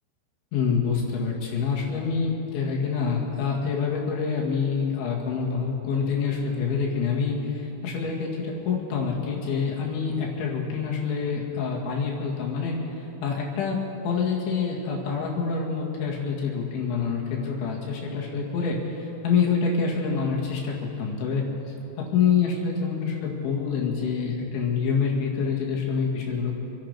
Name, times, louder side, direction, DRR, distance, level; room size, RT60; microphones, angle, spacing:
voice 1, 0.5-13.8 14.0-21.4 22.1-26.5, left 5 dB, 75° left, -2 dB, 4.4 m, -26 dB
26.5 x 11.0 x 4.9 m, 3.0 s
omnidirectional pair, 5.5 m